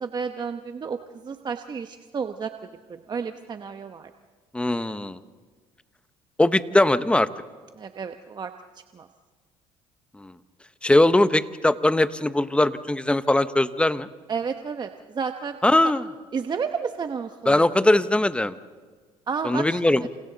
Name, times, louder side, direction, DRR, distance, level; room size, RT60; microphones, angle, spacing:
voice 1, 0.0-2.5 2.9-4.1 7.8-8.5 8.9-9.1 14.3-15.6 16.3-17.6 19.3-20.1, right 6 dB, 35° right, 7 dB, 1.0 m, -31 dB
voice 2, 4.5-5.2 6.4-7.3 10.2-10.3 10.8-14.1 15.6-16.0 17.5-18.6 19.4-20.1, left 1 dB, 10° left, 13 dB, 0.9 m, -20 dB
28.5 x 28.0 x 4.0 m, 1.5 s
supercardioid pair, 85°, 12 cm